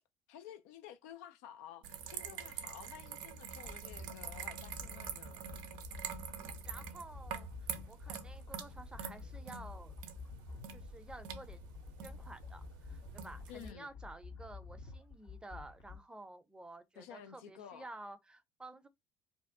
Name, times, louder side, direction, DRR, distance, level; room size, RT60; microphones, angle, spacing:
voice 1, 0.3-5.5 13.5-13.9 17.0-17.9, left 9 dB, 75° left, 0.4 m, -52 dB
sound 1, 1.8-13.7, right 7 dB, 65° right, 0.4 m, -46 dB
sound 2, 3.6-16.0, left 4 dB, 55° left, 0.7 m, -50 dB
voice 2, 6.6-10.0 10.7-11.7 12.0-18.9, right 2 dB, 10° right, 0.5 m, -52 dB
2.5 x 2.1 x 2.5 m
hypercardioid pair, 55°, 8 cm